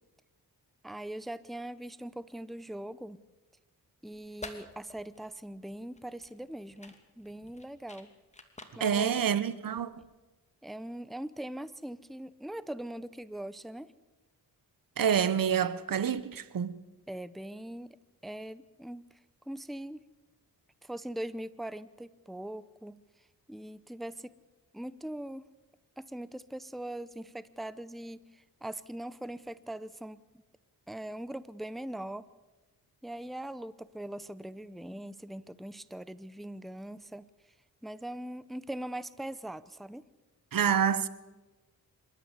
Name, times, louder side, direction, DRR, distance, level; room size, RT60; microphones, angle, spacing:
voice 1, 0.8-3.2 4.0-8.1 8.8-9.3 10.6-13.9 17.1-18.0 18.2-19.0 19.5-20.0 20.8-23.0 23.5-24.3 24.7-25.5 26.0-30.2 30.9-32.3 33.0-37.3 37.8-40.0, right 1 dB, ahead, 0.7 m, -41 dB
sound 1, 4.1-10.2, left 2 dB, 20° left, 2.7 m, -51 dB
voice 2, 8.8-10.0 15.0-16.7 40.5-41.1, right 8 dB, 65° right, 1.2 m, -27 dB
26.5 x 13.0 x 8.2 m
cardioid pair, 75°, 37 cm